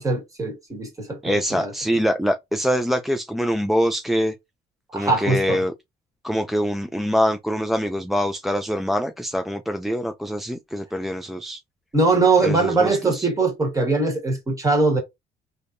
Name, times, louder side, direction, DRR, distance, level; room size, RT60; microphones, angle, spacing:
voice 1, 0.0-1.7 4.9-5.6 11.9-15.0, right 3 dB, 20° right, 1.5 m, -21 dB
voice 2, 1.2-4.3 4.9-5.7 6.2-11.6 12.4-13.3, equal, ahead, 0.3 m, -24 dB
3.4 x 2.8 x 2.6 m
cardioid pair, 110°, 17 cm